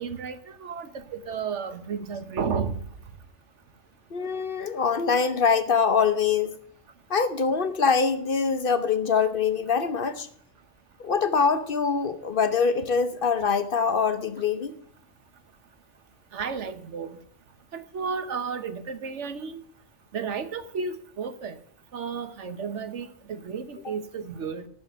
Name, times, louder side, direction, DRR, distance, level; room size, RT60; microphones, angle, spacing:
voice 1, 0.0-2.8 16.3-17.2 17.7-19.6 20.1-21.6 21.9-24.7, right 6 dB, 70° right, 1.3 m, -33 dB
voice 2, 4.1-6.6 7.1-10.3 11.0-14.8 23.8-23.9, left 5 dB, 50° left, 0.9 m, -24 dB
14.0 x 6.1 x 6.6 m
omnidirectional pair, 1.3 m